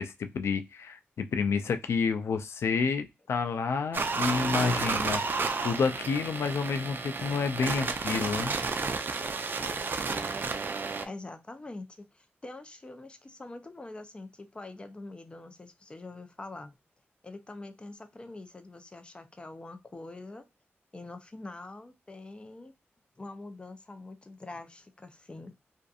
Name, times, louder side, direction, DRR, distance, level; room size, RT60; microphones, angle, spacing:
voice 1, 0.0-5.2 5.6-8.6, left 5 dB, 85° left, 0.4 m, -29 dB
sound 1, 3.9-11.0, right 4 dB, 50° right, 0.4 m, -31 dB
voice 2, 11.0-11.9 12.1-16.7 17.2-20.4 20.9-22.7 23.2-25.5, left 2 dB, 25° left, 0.5 m, -44 dB
2.5 x 2.5 x 2.3 m
wide cardioid pair, 90°, 4 cm